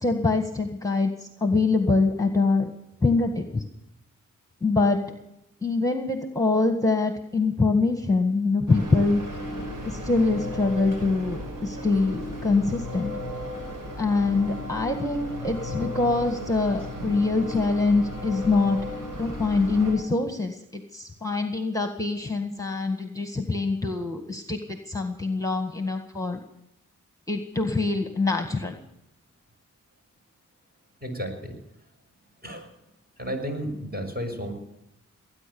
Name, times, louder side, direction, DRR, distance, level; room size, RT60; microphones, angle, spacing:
voice 1, 0.0-2.7 3.0-3.6 4.6-5.0 5.6-9.2 9.9-13.1 14.0-18.8 19.2-26.4 27.3-28.7, left 3 dB, 10° left, 6 dB, 1.7 m, -24 dB
sound 1, 8.7-19.9, equal, 80° right, 5.6 m, -35 dB
voice 2, 31.0-31.6 32.4-32.7 33.2-34.5, equal, 30° right, 3 dB, 6.2 m, -32 dB
19.5 x 10.0 x 7.0 m, 0.86 s
cardioid pair, 45°, 32 cm